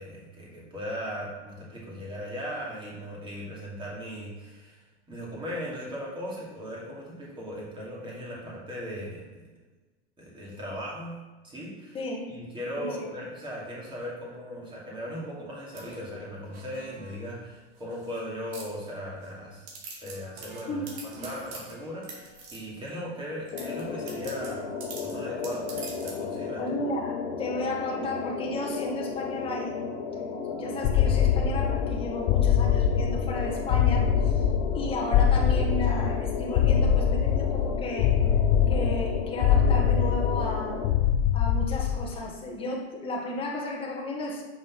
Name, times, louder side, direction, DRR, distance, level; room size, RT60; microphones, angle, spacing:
voice 1, 0.0-4.8 5.1-9.5 10.2-11.2 11.4-12.0 12.3-19.7 20.0-24.7 25.0-26.6, equal, 15° right, -5 dB, 2.6 m, -38 dB
voice 2, 11.9-12.3 12.8-13.1 20.7-21.3 26.6-29.8 30.5-34.5 34.7-38.2 38.7-40.8 41.3-44.4, left 1 dB, 15° left, -2 dB, 1.3 m, -33 dB
sound 1, 15.7-17.3 17.8-18.2 18.5-19.3 19.7-22.9 23.5-26.3, right 3 dB, 60° right, 2.2 m, -45 dB
sound 2, 23.5-40.9, left 5 dB, 60° left, 1.2 m, -34 dB
sound 3, 30.8-42.2, left 8 dB, 40° left, 0.4 m, -23 dB
6.3 x 5.1 x 5.9 m, 1.2 s
hypercardioid pair, 130°, 34 cm